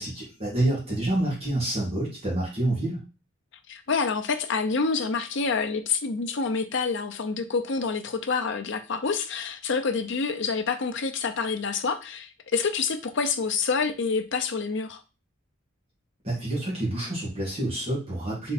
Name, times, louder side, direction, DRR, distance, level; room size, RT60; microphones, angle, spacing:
voice 1, 0.0-3.0 16.2-18.5, right 1 dB, 30° right, 1.9 m, -28 dB
voice 2, 3.7-15.0, left 5 dB, 65° left, 0.6 m, -27 dB
3.8 x 3.3 x 4.0 m
head